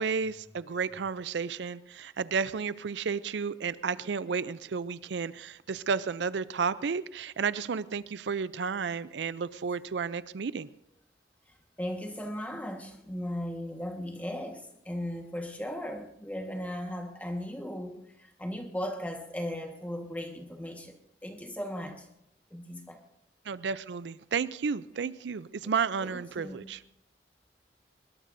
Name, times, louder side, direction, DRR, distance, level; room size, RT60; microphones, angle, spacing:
voice 1, 0.0-10.7 23.5-26.8, right 5 dB, 80° right, 0.5 m, -32 dB
voice 2, 11.5-22.1 22.5-23.0 25.6-25.7 26.0-26.7, equal, 10° left, 1.4 m, -37 dB
21.5 x 21.0 x 2.6 m
head